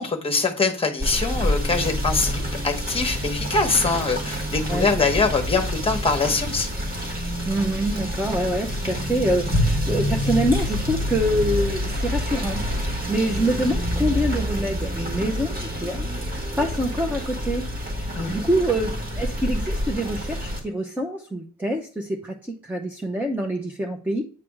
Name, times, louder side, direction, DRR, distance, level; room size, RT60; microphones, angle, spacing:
voice 1, 0.0-6.7 18.1-18.3, left 4 dB, 20° left, 4 dB, 1.0 m, -23 dB
Rain / Motor vehicle (road), 1.0-20.6, equal, 30° right, 1.4 m, -27 dB
voice 2, 4.7-5.0 7.4-17.6 18.0-24.2, right 1 dB, 5° right, 2 dB, 0.6 m, -26 dB
8.7 x 3.4 x 4.7 m, 0.40 s
wide cardioid pair, 180°, 29 cm